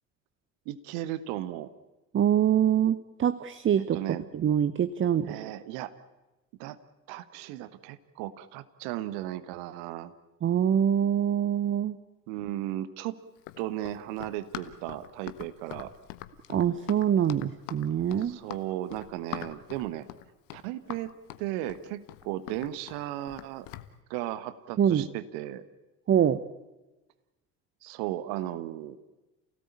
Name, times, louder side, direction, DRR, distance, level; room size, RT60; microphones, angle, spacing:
voice 1, 0.6-1.7 3.8-4.2 5.0-5.9 6.6-6.8 7.1-10.1 12.3-13.2 13.6-15.9 18.2-20.1 20.5-21.1 21.4-23.7 24.1-25.7 27.8-29.0, right 14 dB, 60° right, 14 dB, 1.4 m, -35 dB
voice 2, 2.1-4.0 4.3-5.4 10.4-12.0 16.5-18.4 24.8-25.1 26.1-26.4, right 9 dB, 30° right, 15 dB, 0.9 m, -24 dB
Run, 13.4-23.9, left 15 dB, 60° left, 1.3 m, -43 dB
28.0 x 17.5 x 8.6 m, 1.1 s
figure-of-eight pair, 55°, 42 cm